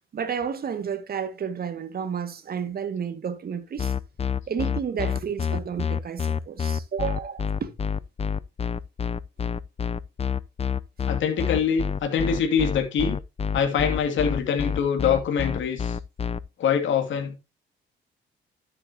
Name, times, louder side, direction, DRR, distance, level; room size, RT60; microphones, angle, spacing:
voice 1, 0.1-3.9 4.5-7.7 11.3-11.4, right 7 dB, 50° right, 2.0 m, -31 dB
sound 1, 3.8-16.4, left 6 dB, 30° left, 0.6 m, -27 dB
voice 2, 11.1-13.2 13.5-16.0 16.6-17.4, left 7 dB, 70° left, 2.6 m, -24 dB
12.5 x 8.3 x 2.9 m
cardioid pair, 90°, 20 cm